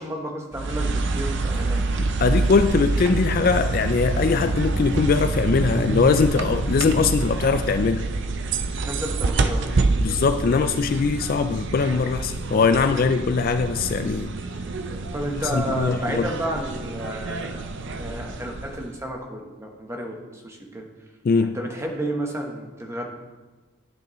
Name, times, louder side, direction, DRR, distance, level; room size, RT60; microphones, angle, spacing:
voice 1, 0.0-1.8 8.8-9.7 15.1-20.9 21.4-23.1, right 1 dB, 10° right, 1 dB, 1.0 m, -31 dB
sound 1, 0.5-19.0, right 3 dB, 55° right, 0.5 m, -27 dB
voice 2, 2.0-8.0 10.0-14.3 15.4-16.3 21.2-21.6, left 5 dB, 40° left, 9 dB, 0.3 m, -21 dB
10.5 x 9.0 x 3.1 m, 1.2 s
head